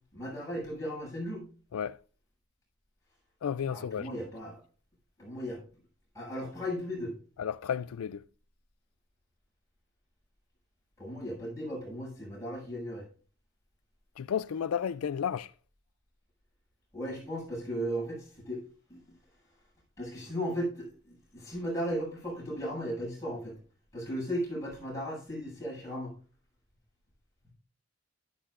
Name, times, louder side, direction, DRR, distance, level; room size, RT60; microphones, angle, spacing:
voice 1, 0.1-1.5 3.7-4.6 5.2-5.6 6.1-7.1 11.0-13.0 16.9-18.6 18.9-19.2 20.0-23.6 23.9-26.1, equal, 15° left, 6.9 m, -36 dB
voice 2, 3.4-4.1 7.4-8.2 14.2-15.5, left 8 dB, 90° left, 0.4 m, -32 dB
12.5 x 12.0 x 2.5 m
head